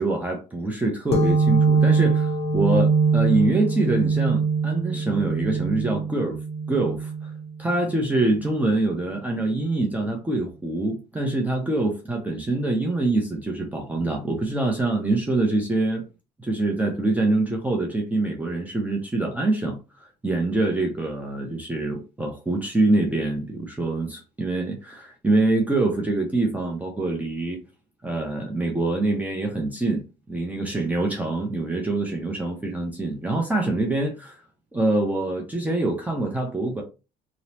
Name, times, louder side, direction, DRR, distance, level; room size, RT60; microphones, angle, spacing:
voice 1, 0.0-6.4 6.7-7.3 7.6-16.0 16.4-27.6 28.0-34.4 34.7-36.8, right 2 dB, 10° right, 0 dB, 0.5 m, -25 dB
sound 1, 1.1-8.4, right 5 dB, 35° left, 0.6 m, -23 dB
3.0 x 2.0 x 2.7 m, 0.30 s
cardioid pair, 110°, 17 cm